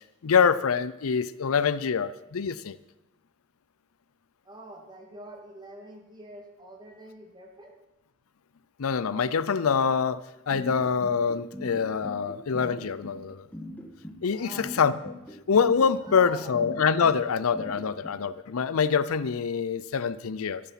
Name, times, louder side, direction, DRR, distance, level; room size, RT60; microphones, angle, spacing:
voice 1, 0.2-2.8 8.8-13.5 14.2-15.1 15.5-20.6, left 6 dB, 80° left, 16 dB, 0.5 m, -25 dB
voice 2, 4.4-7.8 14.3-14.7 15.9-16.6, right 1 dB, 20° right, 2 dB, 2.4 m, -45 dB
sound 1, 10.5-18.1, left 1 dB, 10° left, 1.8 m, -40 dB
13.5 x 11.0 x 5.9 m, 0.94 s
head